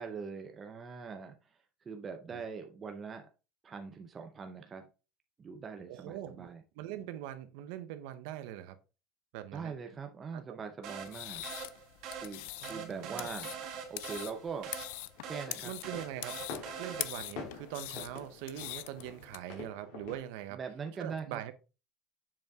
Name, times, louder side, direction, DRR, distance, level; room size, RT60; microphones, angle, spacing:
voice 1, 0.0-1.6 1.9-3.3 3.6-4.9 5.4-6.6 9.5-11.4 12.2-13.6 13.9-14.7 15.2-15.7 20.5-21.5, right 5 dB, 20° right, 0.6 m, -42 dB
voice 2, 5.9-8.8 9.3-9.7 10.3-10.6 12.6-13.3 15.6-16.4 16.8-20.6 21.0-21.5, right 12 dB, 75° right, 0.8 m, -42 dB
sound 1, 10.8-17.4, right 7 dB, 50° right, 2.2 m, -44 dB
sound 2, 11.0-19.4, left 17 dB, 90° left, 0.5 m, -43 dB
sound 3, 15.1-20.2, left 4 dB, 65° left, 2.8 m, -48 dB
7.0 x 5.4 x 3.5 m
cardioid pair, 175°, 0 cm